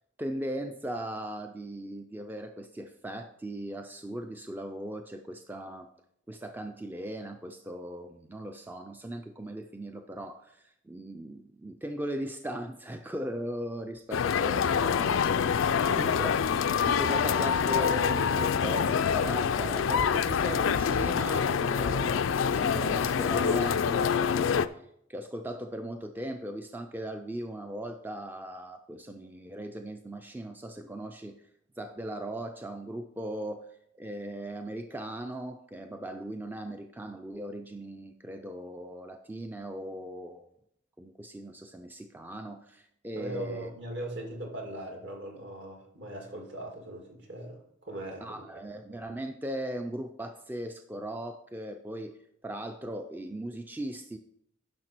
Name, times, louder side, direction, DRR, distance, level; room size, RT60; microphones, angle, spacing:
voice 1, 0.2-5.9 6.3-16.4 16.9-24.8 25.1-31.4 31.8-33.7 34.0-40.5 41.0-43.7 48.2-54.2, right 1 dB, 10° right, 6 dB, 0.4 m, -38 dB
sound 1, 14.1-24.7, left 7 dB, 80° left, 0.4 m, -26 dB
voice 2, 43.1-48.6, right 1 dB, 65° right, 1 dB, 2.2 m, -39 dB
10.5 x 5.9 x 4.4 m, 0.72 s
head